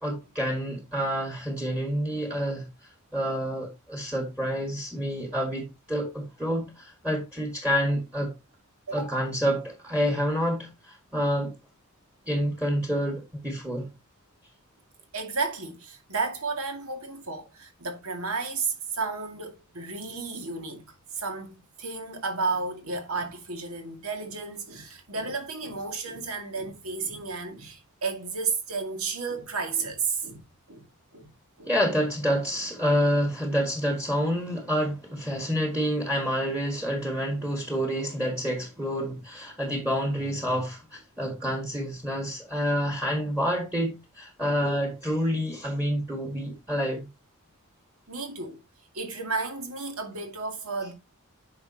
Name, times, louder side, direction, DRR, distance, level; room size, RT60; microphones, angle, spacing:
voice 1, 0.0-2.7 3.1-8.3 8.9-11.5 12.3-13.9 31.7-47.1, equal, 5° right, 1.8 m, -28 dB
voice 2, 8.9-9.3 15.1-30.4 30.7-30.9 31.1-31.3 31.6-31.7 39.6-39.8 48.1-48.6 48.9-50.9, right 4 dB, 70° right, 2.2 m, -32 dB
9.5 x 5.8 x 2.9 m
head